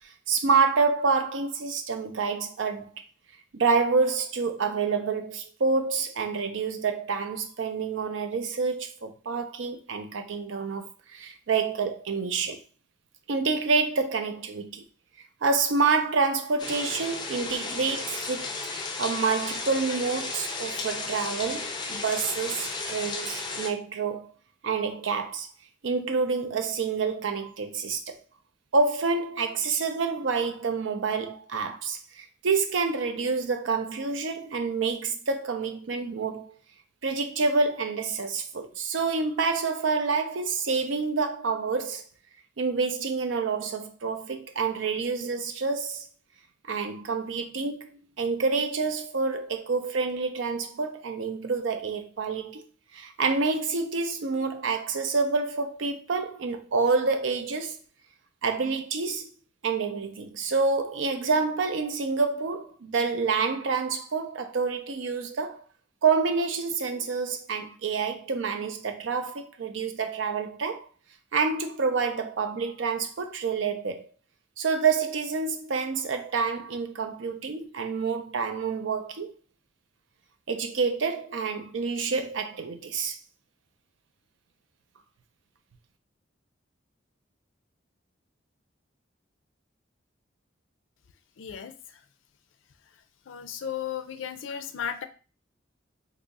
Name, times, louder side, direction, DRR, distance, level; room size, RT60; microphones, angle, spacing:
voice 1, 0.3-2.9 3.5-12.6 13.3-14.8 15.4-18.5 19.0-24.3 24.6-25.5 25.8-28.2 28.7-36.5 37.0-42.0 42.6-46.1 46.7-52.6 52.9-57.8 58.4-59.3 59.6-65.6 66.0-70.9 71.3-74.1 74.6-79.4 80.5-83.2, right 4 dB, 85° right, 0.5 m, -28 dB
sound 1, 16.6-23.7, left 3 dB, 25° left, 0.5 m, -34 dB
voice 2, 91.4-91.7 93.3-95.0, left 8 dB, 85° left, 0.4 m, -34 dB
2.7 x 2.4 x 4.0 m
head